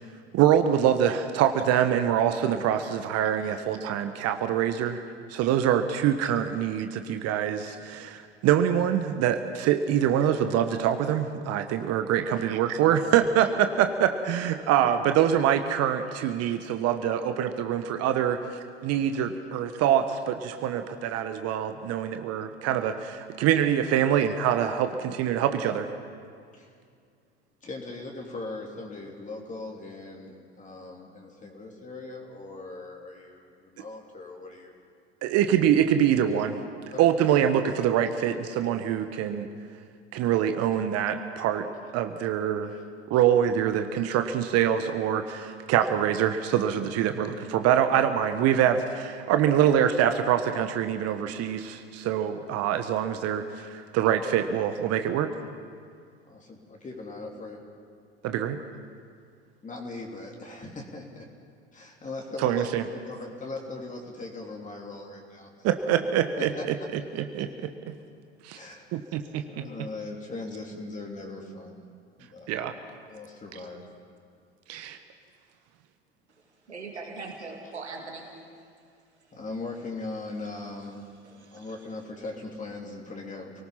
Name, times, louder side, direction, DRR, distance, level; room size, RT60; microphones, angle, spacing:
voice 1, 0.3-5.0 5.3-18.4 18.8-25.9 35.2-36.6 37.0-39.5 40.1-41.6 41.9-42.7 43.1-55.3 58.2-58.6 62.4-62.8 65.6-66.5 67.1-67.5 68.4-68.6 68.9-69.4 72.5-72.7 74.7-75.0, right 9 dB, 50° right, 8 dB, 1.3 m, -24 dB
voice 2, 27.6-34.8 36.9-37.1 42.7-42.8 53.6-53.7 56.3-57.6 59.6-61.2 61.7-65.9 66.4-66.6 67.2-67.4 68.5-69.1 69.5-71.8 72.2-72.6 73.1-73.9 79.3-81.0 81.5-83.6, left 3 dB, 25° left, 0 dB, 3.3 m, -40 dB
voice 3, 76.7-78.3 79.3-79.4 81.2-81.7, right 4 dB, 90° right, 1 dB, 2.3 m, -40 dB
29.0 x 19.0 x 5.8 m, 2.2 s
figure-of-eight pair, 75°, 33 cm